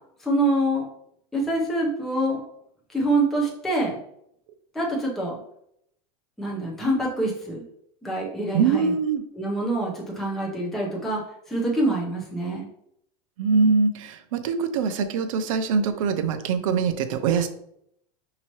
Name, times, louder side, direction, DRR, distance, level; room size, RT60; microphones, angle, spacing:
voice 1, 0.2-0.9 1.3-2.4 2.9-4.0 4.7-5.3 6.4-7.6 8.0-8.9 9.3-11.2 11.5-12.7, right 1 dB, ahead, -3 dB, 0.5 m, -25 dB
voice 2, 8.5-9.2 13.4-17.5, right 5 dB, 60° right, 8 dB, 0.6 m, -23 dB
5.5 x 2.9 x 3.0 m, 0.73 s
supercardioid pair, 175°, 20 cm